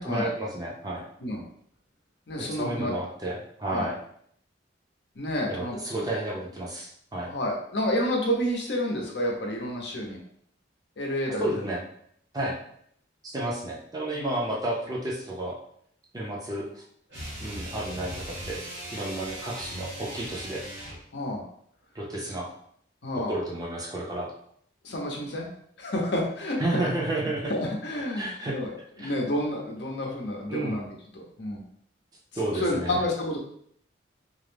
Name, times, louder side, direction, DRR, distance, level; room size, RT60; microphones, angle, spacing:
voice 1, 0.0-1.1 2.4-4.0 5.5-7.3 11.3-11.8 12.3-12.6 13.2-15.6 16.1-16.8 17.4-18.6 18.9-20.6 21.9-22.5 23.3-24.3 26.6-27.5 28.1-28.6 29.0-29.1 30.5-30.8 32.3-33.0, right 1 dB, 20° right, -3 dB, 0.5 m, -31 dB
voice 2, 2.3-2.9 3.7-3.9 5.2-6.0 7.2-10.2 11.0-11.6 14.1-14.3 21.1-21.4 23.0-23.3 24.8-25.5 25.8-26.9 27.5-28.7 29.0-31.6 32.4-33.4, left 1 dB, 65° left, 0 dB, 0.6 m, -29 dB
sound 1, 17.1-21.1, equal, 65° right, 1.1 m, -39 dB
2.4 x 2.0 x 3.2 m, 0.66 s
head